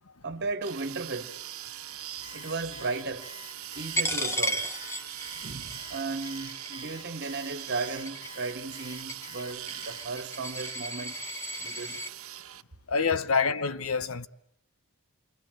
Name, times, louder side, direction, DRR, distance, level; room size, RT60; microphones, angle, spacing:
voice 1, 0.2-1.3 2.3-3.3 3.8-4.6 5.3-11.2 11.6-12.0, right 3 dB, 50° right, 1.7 m, -35 dB
sound 1, 0.6-12.6, right 12 dB, 85° right, 1.2 m, -42 dB
Alarm, 2.2-10.0, left 4 dB, 30° left, 2.6 m, -48 dB
Coin (dropping), 4.0-12.1, equal, 15° left, 1.2 m, -35 dB
voice 2, 12.9-14.3, left 5 dB, 80° left, 1.0 m, -26 dB
27.5 x 24.5 x 7.8 m
head